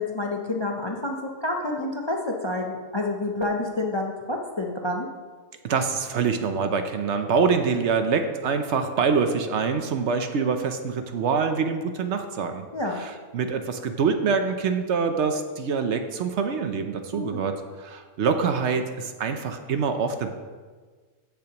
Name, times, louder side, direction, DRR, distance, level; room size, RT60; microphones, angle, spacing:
voice 1, 0.0-5.1 12.7-13.0 17.1-17.4, left 2 dB, 30° left, 1 dB, 0.5 m, -28 dB
voice 2, 5.6-12.7 13.0-17.5 17.8-20.3, right 5 dB, 65° right, 7 dB, 0.9 m, -25 dB
14.0 x 6.9 x 2.9 m, 1.5 s
omnidirectional pair, 1.4 m